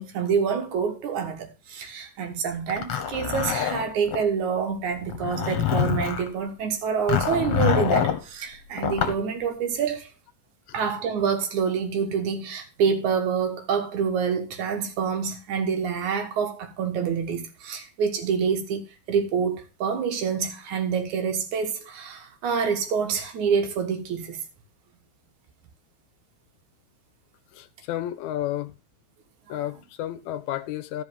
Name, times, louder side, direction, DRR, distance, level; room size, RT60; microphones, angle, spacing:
voice 1, 0.0-10.1 10.7-24.4 29.5-29.7, right 6 dB, 80° right, 2.9 m, -27 dB
Zipper (clothing), 2.7-4.2 5.0-6.3 7.1-8.2 8.8-9.2, left 9 dB, 55° left, 2.0 m, -25 dB
voice 2, 27.5-28.7 29.5-31.0, left 12 dB, 85° left, 2.1 m, -31 dB
13.5 x 5.4 x 5.2 m
omnidirectional pair, 3.3 m